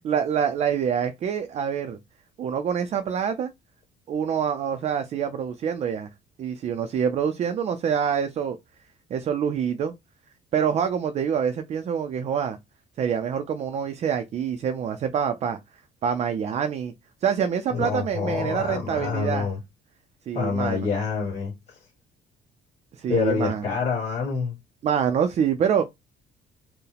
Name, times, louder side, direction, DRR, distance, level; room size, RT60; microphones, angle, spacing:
voice 1, 0.0-2.0 2.4-3.5 4.1-6.1 6.4-8.6 9.1-9.9 10.5-12.6 13.0-15.6 16.0-16.9 17.2-19.5 20.3-20.9 22.9-23.6 24.8-25.8, right 7 dB, 35° right, 0.4 m, -26 dB
voice 2, 17.7-19.6 20.3-21.8 23.1-24.6, left 5 dB, 35° left, 1.8 m, -27 dB
4.5 x 2.1 x 3.3 m
cardioid pair, 165°, 19 cm